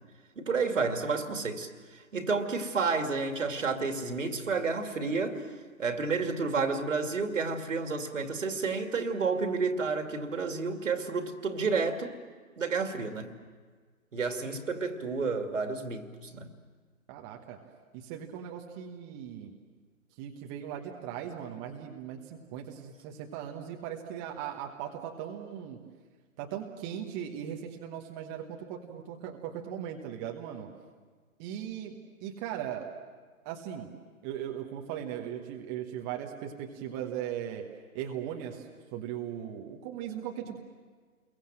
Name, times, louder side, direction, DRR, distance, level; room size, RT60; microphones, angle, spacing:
voice 1, 0.4-5.5 5.8-12.1 12.6-13.3 14.1-16.5, right 4 dB, 60° right, 6 dB, 2.7 m, -30 dB
voice 2, 17.1-17.6 17.9-19.5 20.2-25.8 26.4-30.7 31.4-32.9 33.4-33.9 34.2-37.7 37.9-38.6 38.9-40.6, right 10 dB, 15° right, 2 dB, 1.2 m, -38 dB
29.5 x 22.5 x 7.6 m, 1.5 s
figure-of-eight pair, 140°, 43 cm